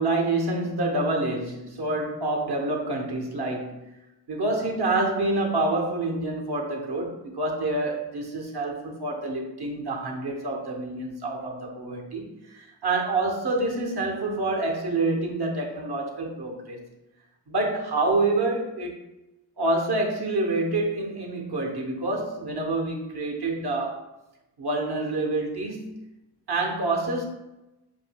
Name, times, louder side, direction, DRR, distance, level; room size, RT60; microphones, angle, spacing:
voice 1, 0.0-3.8 4.3-16.8 17.5-19.0 19.6-24.0 24.6-26.0 26.5-27.2, right 2 dB, 75° right, 1 dB, 0.9 m, -27 dB
7.3 x 2.7 x 2.2 m, 0.95 s
wide cardioid pair, 95°, 40 cm